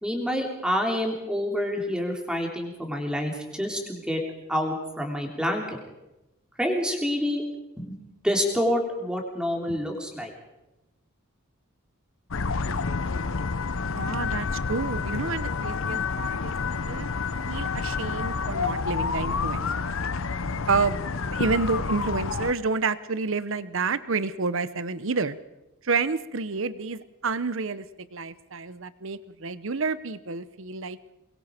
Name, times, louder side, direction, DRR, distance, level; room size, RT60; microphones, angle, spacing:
voice 1, 0.0-4.2 4.5-5.6 6.6-7.4 7.8-7.9 8.2-10.3, equal, 5° right, 1 dB, 3.2 m, -27 dB
sound 1, 12.3-22.5, left 4 dB, 65° left, 0.8 m, -29 dB
voice 2, 13.8-17.1 17.4-19.9 20.7-25.4 25.8-27.9 28.1-31.0, right 4 dB, 60° right, 15 dB, 0.9 m, -29 dB
24.0 x 21.0 x 5.1 m, 0.97 s
head